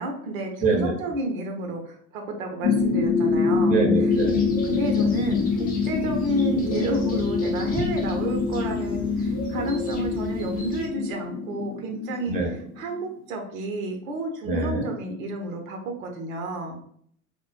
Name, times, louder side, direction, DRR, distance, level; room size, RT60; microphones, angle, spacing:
voice 1, 0.0-3.7 4.6-12.4 12.8-16.7, right 1 dB, 65° right, 2 dB, 0.7 m, -31 dB
voice 2, 0.6-0.9 3.7-4.5 12.3-12.5 14.4-14.8, right 3 dB, 20° right, 0 dB, 0.7 m, -24 dB
sound 1, 2.6-13.1, left 4 dB, 60° left, 0.6 m, -25 dB
sound 2, 4.1-10.9, left 2 dB, 20° left, 0.7 m, -37 dB
2.2 x 2.0 x 3.0 m, 0.63 s
figure-of-eight pair, 75°, 44 cm